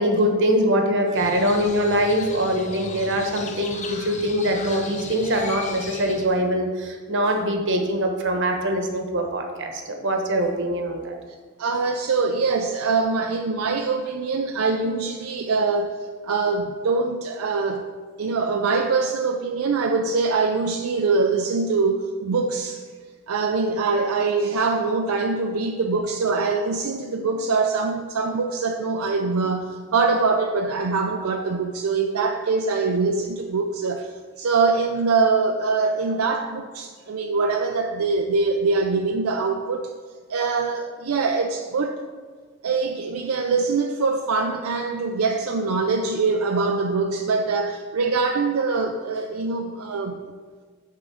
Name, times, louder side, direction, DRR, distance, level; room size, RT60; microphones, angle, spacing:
voice 1, 0.0-11.1, equal, 60° right, 3 dB, 1.1 m, -23 dB
Crow, 1.1-6.3, left 3 dB, 35° left, 0.8 m, -37 dB
voice 2, 11.6-16.0 16.2-17.9 18.2-22.8 23.3-39.9 40.3-42.0 42.6-50.2, right 4 dB, 80° right, 3 dB, 0.5 m, -23 dB
9.1 x 3.8 x 6.3 m, 1.5 s
head